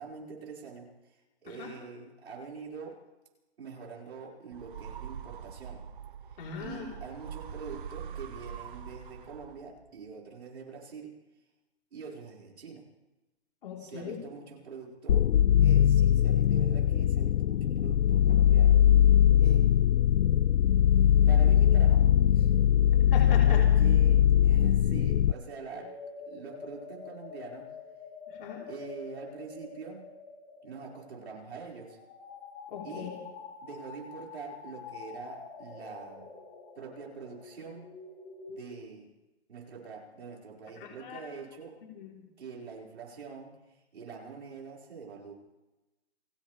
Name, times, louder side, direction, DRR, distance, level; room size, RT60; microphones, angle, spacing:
voice 1, 0.0-3.0 3.6-5.8 6.6-11.1 11.9-12.8 13.8-15.3 15.6-18.8 19.4-19.7 21.3-22.1 22.3-22.5 23.5-25.9 26.3-27.7 28.7-30.1 30.6-32.0 32.8-33.1 33.6-36.3 36.8-37.9 38.5-39.1 39.5-41.8 42.4-43.5 43.9-45.3, right 5 dB, 70° right, -2 dB, 5.7 m, -44 dB
sound 1, 4.5-9.8, right 8 dB, 50° right, 0.9 m, -43 dB
voice 2, 6.4-6.9 13.6-14.2 23.1-23.6 28.3-28.7 32.7-33.1 40.8-41.2 41.9-42.2, left 7 dB, 50° left, -3 dB, 4.1 m, -40 dB
sound 2, 15.1-25.3, left 10 dB, 90° left, 0.5 m, -21 dB
sound 3, 25.4-38.7, left 4 dB, 5° left, 0.4 m, -47 dB
29.0 x 14.0 x 3.5 m, 1.0 s
hypercardioid pair, 155°, 33 cm